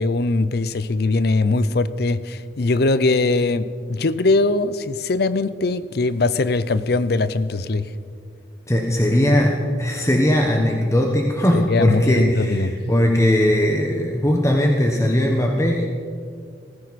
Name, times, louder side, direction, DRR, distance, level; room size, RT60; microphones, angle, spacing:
voice 1, 0.0-7.9 11.5-12.7, left 3 dB, 55° left, 15 dB, 0.6 m, -21 dB
voice 2, 8.7-15.9, left 1 dB, 15° left, 1 dB, 1.1 m, -19 dB
19.0 x 15.5 x 4.2 m, 2.3 s
head